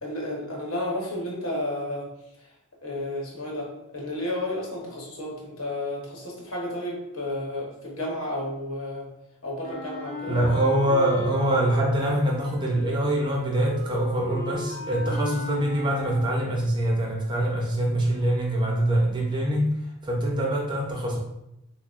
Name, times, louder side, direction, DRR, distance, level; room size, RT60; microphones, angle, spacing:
voice 1, 0.0-2.1 2.8-9.1 9.4-10.4, left 1 dB, 65° left, -3 dB, 1.1 m, -32 dB
Wind instrument woodwind instrument, 9.6-16.6, left 1 dB, 45° left, 1.3 m, -38 dB
voice 2, 10.3-21.2, right 1 dB, 20° right, -1 dB, 0.5 m, -24 dB
5.7 x 2.0 x 2.5 m, 0.86 s
head